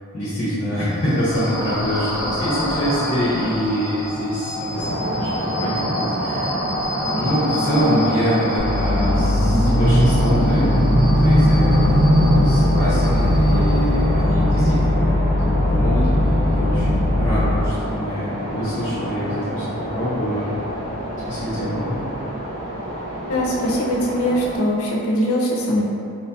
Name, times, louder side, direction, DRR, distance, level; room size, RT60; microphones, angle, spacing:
voice 1, 0.1-6.5 7.1-10.8 11.2-20.6 21.3-22.0, equal, 35° left, -11 dB, 0.7 m, -25 dB
sound 1, 0.8-14.2, left 1 dB, ahead, 0.8 m, -29 dB
sound 2, 4.7-24.6, equal, 75° right, 1.5 m, -28 dB
sound 3, 8.6-17.7, left 1 dB, 30° right, 0.5 m, -18 dB
voice 2, 23.3-25.8, equal, 80° left, -3 dB, 0.6 m, -21 dB
4.2 x 2.7 x 2.2 m, 2.5 s
head